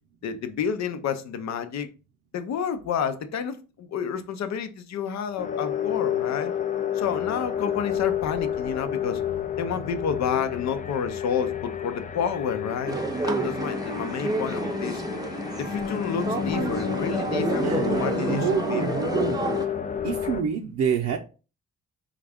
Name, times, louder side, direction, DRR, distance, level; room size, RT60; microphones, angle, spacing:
voice 1, 0.2-1.9 2.3-6.5 6.9-9.2 9.6-13.0 13.2-15.0 15.6-19.1, left 7 dB, 65° left, 0.7 m, -30 dB
sound 1, 5.4-20.4, left 9 dB, 25° left, 0.4 m, -30 dB
sound 2, 12.9-19.7, right 2 dB, 10° right, 0.6 m, -30 dB
voice 2, 17.6-19.4 20.0-21.2, right 7 dB, 65° right, 0.6 m, -27 dB
4.0 x 2.4 x 3.4 m
cardioid pair, 90°, 30 cm